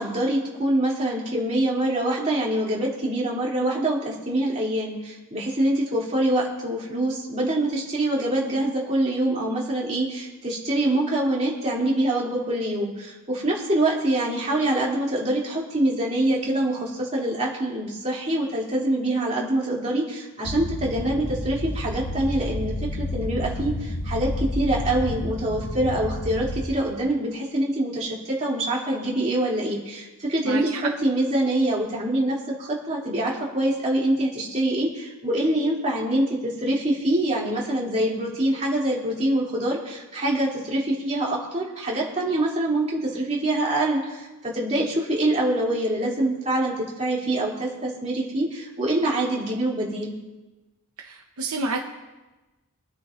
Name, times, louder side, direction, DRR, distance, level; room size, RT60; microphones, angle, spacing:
voice 1, 0.0-50.1, right 1 dB, 30° right, -5 dB, 2.8 m, -25 dB
sound 1, 20.4-26.6, left 1 dB, 60° left, 1.5 m, -30 dB
voice 2, 30.4-30.8 51.1-51.8, right 3 dB, 70° right, 2 dB, 0.9 m, -29 dB
23.5 x 9.6 x 2.5 m, 1.1 s
head